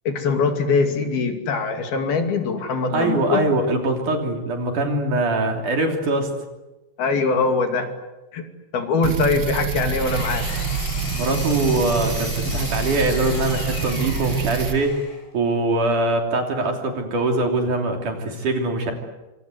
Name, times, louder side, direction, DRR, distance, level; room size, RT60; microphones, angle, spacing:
voice 1, 0.1-3.4 7.0-7.9 8.3-8.4 8.7-10.7, left 4 dB, 60° left, 5 dB, 4.3 m, -22 dB
voice 2, 2.9-6.3 11.1-15.0 15.3-18.9, right 2 dB, 50° right, 3 dB, 4.4 m, -22 dB
sound 1, 9.0-14.8, right 5 dB, 80° right, 1.0 m, -26 dB
Engine, 9.6-15.3, left 4 dB, 80° left, 8.2 m, -36 dB
26.5 x 26.5 x 8.1 m, 1.1 s
omnidirectional pair, 5.0 m